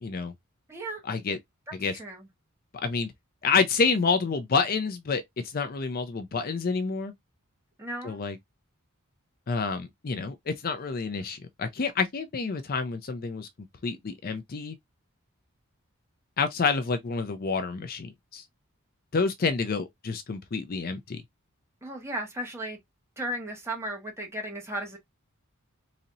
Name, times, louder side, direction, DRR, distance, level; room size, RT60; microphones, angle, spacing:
voice 1, 0.0-0.3 1.0-1.4 1.7-2.0 2.8-3.1 3.4-7.1 8.0-8.4 9.5-13.5 13.8-14.8 16.4-18.4 19.1-21.2, left 4 dB, 45° left, 0.5 m, -28 dB
voice 2, 0.7-1.0 2.0-2.3 7.8-8.2 21.8-22.8 23.2-25.0, right 1 dB, 10° right, 1.4 m, -35 dB
4.1 x 2.8 x 2.5 m
head